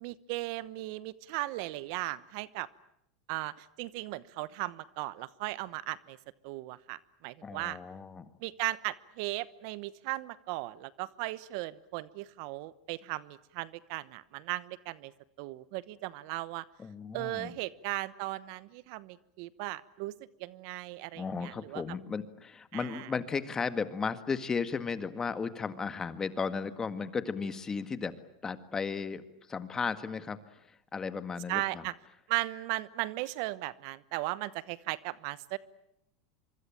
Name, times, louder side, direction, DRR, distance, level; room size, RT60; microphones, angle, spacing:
voice 1, 0.0-2.7 3.3-6.2 6.4-7.8 8.4-15.1 15.4-16.6 17.1-20.1 20.4-21.8 22.7-23.1 31.5-31.9 32.3-35.6, right 19 dB, 60° right, 17 dB, 1.0 m, -37 dB
voice 2, 7.4-8.3 16.8-17.5 21.1-28.1 28.4-29.2 29.5-30.4 30.9-31.8, left 5 dB, 20° left, 11 dB, 1.8 m, -35 dB
25.5 x 24.5 x 9.0 m, 0.79 s
supercardioid pair, 120°, 3 cm